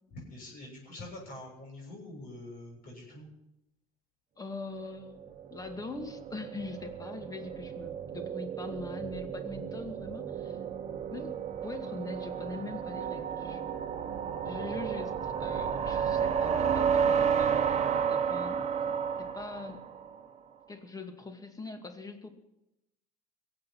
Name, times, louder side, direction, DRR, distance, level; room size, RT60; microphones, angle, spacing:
voice 1, 0.1-3.3 16.1-16.2, left 1 dB, 50° left, -2 dB, 7.2 m, -45 dB
voice 2, 4.4-10.6 11.1-13.8 14.4-18.6 19.2-19.8 20.7-22.3, left 3 dB, 20° left, 7 dB, 2.2 m, -42 dB
sound 1, 5.0-20.2, right 7 dB, 35° right, 1.4 m, -32 dB
23.0 x 8.1 x 5.9 m, 0.92 s
hypercardioid pair, 70°, 19 cm